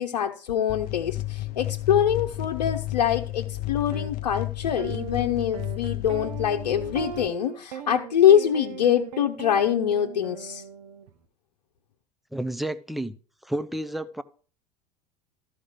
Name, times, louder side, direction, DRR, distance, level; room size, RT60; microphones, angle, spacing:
voice 1, 0.0-10.6, left 9 dB, 70° left, 0.9 m, -24 dB
sound 1, 0.7-7.3, left 16 dB, 45° left, 0.6 m, -32 dB
sound 2, 3.9-4.1 4.8-11.1, right 9 dB, 65° right, 1.2 m, -38 dB
voice 2, 12.3-13.1 13.4-14.2, right 1 dB, ahead, 0.7 m, -30 dB
13.5 x 5.1 x 6.6 m
figure-of-eight pair, 75°, 21 cm